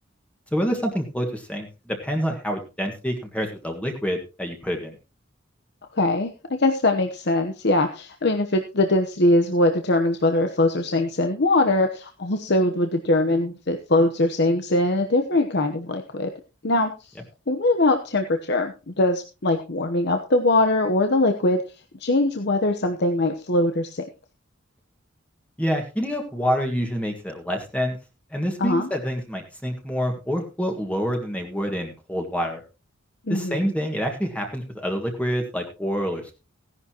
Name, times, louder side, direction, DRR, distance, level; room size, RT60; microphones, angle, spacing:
voice 1, 0.5-4.9 25.6-28.0 28.3-32.6 33.3-36.3, equal, 5° left, 3 dB, 1.7 m, -27 dB
voice 2, 5.9-6.3 6.6-16.3 16.6-17.1 17.5-21.6 22.0-24.0 28.6-28.9 33.3-33.6, left 2 dB, 55° left, 5 dB, 1.0 m, -22 dB
16.5 x 11.0 x 2.9 m, 0.31 s
head